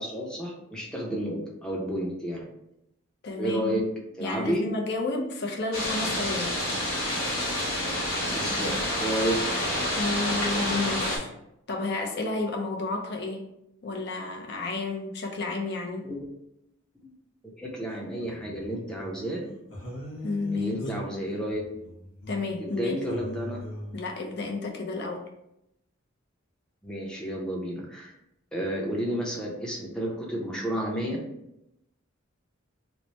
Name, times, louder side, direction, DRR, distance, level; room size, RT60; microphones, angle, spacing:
voice 1, 0.0-2.4 3.4-3.9 4.2-4.7 8.3-9.5 16.0-16.3 17.0-17.1 17.6-19.4 20.5-21.6 22.6-23.6 26.8-28.1 28.5-31.2, right 1 dB, 5° left, -2 dB, 0.6 m, -31 dB
voice 2, 3.2-3.8 4.2-6.6 10.0-11.3 11.7-13.5 13.8-16.1 20.2-20.8 22.3-22.9 23.9-25.3, left 3 dB, 50° left, 2 dB, 0.6 m, -31 dB
sound 1, 5.7-11.2, left 1 dB, 90° left, 1.3 m, -28 dB
sound 2, 17.9-19.3 19.7-22.8 23.1-24.0, left 1 dB, 75° left, 1.1 m, -40 dB
3.1 x 2.1 x 4.0 m, 0.83 s
head